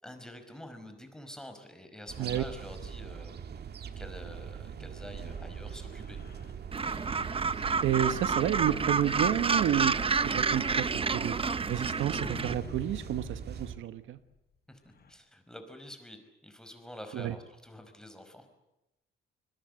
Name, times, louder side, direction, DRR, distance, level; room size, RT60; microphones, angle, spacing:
voice 1, 0.0-3.3 4.0-6.2 14.7-14.8 15.1-18.5, left 1 dB, 5° left, 7 dB, 5.2 m, -47 dB
sound 1, 2.1-13.8, right 7 dB, 55° right, 1.7 m, -42 dB
sound 2, 4.8-9.5 9.9-15.1, left 5 dB, 55° left, 6.1 m, -52 dB
Gull seagull, 6.7-12.5, right 5 dB, 30° right, 0.9 m, -29 dB
voice 2, 7.8-10.0 10.2-14.2 17.1-17.3, right 11 dB, 75° right, 12 dB, 1.2 m, -30 dB
26.0 x 21.5 x 8.0 m, 0.92 s
cardioid pair, 90°, 20 cm